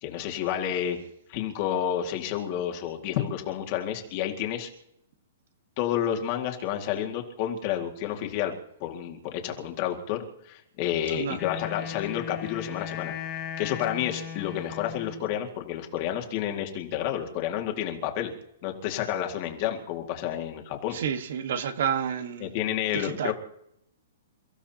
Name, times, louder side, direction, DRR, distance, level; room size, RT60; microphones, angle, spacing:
voice 1, 0.0-1.0 1.3-4.7 5.8-8.5 8.8-13.1 13.6-18.3 18.6-21.0 22.4-23.3, left 10 dB, 30° left, 2.1 m, -30 dB
Wind instrument woodwind instrument, 11.3-15.3, left 9 dB, 15° left, 2.2 m, -37 dB
voice 2, 20.9-22.5 22.9-23.3, right 8 dB, 55° right, 1.4 m, -29 dB
29.0 x 15.5 x 2.9 m
hypercardioid pair, 175°, 0 cm